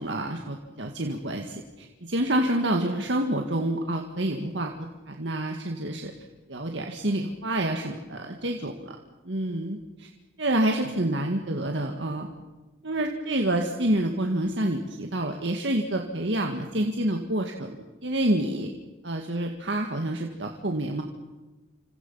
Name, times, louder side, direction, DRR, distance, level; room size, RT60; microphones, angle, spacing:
voice 1, 0.0-4.7 5.1-6.1 6.5-9.0 9.2-10.1 10.4-12.3 12.8-17.8 18.0-18.7 19.0-21.0, right 1 dB, 75° right, 2 dB, 2.0 m, -28 dB
27.5 x 26.0 x 5.7 m, 1.2 s
head